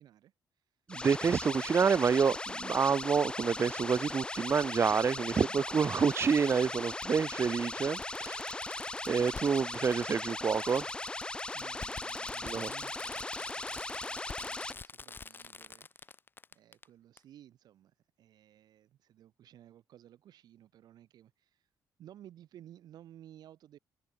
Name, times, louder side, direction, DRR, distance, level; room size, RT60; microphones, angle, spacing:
voice 1, 0.0-0.8 11.5-16.2 16.5-21.7 22.0-23.8, right 11 dB, 70° right, 6.8 m, -57 dB
sound 1, 0.9-14.7, left 2 dB, 15° left, 0.7 m, -38 dB
voice 2, 0.9-8.6 9.1-10.8 12.4-12.7, right 6 dB, 35° right, 1.4 m, -28 dB
Fireworks, 3.7-3.8 5.3-5.4 7.0-7.1 7.6-7.7 8.0-16.8 17.2-17.3, left 4 dB, 30° left, 4.4 m, -48 dB
cardioid pair, 110°, 7 cm